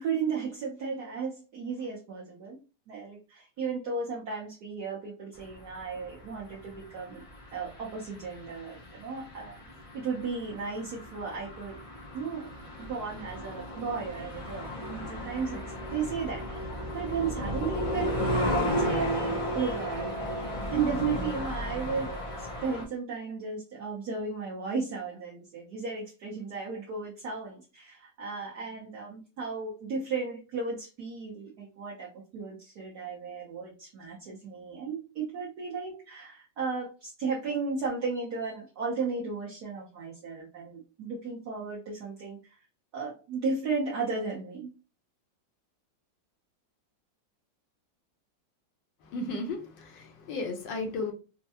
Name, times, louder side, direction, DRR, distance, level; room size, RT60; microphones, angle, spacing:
voice 1, 0.0-2.6 2.9-7.2 7.5-9.6 9.9-11.8 12.1-15.6 15.9-20.1 20.7-42.4 42.9-44.7, right 5 dB, 65° right, 1.3 m, -34 dB
sound 1, 5.4-22.8, left 1 dB, 60° left, 0.3 m, -35 dB
voice 2, 49.0-51.1, left 2 dB, 80° left, 1.5 m, -34 dB
4.3 x 2.2 x 2.8 m
omnidirectional pair, 2.0 m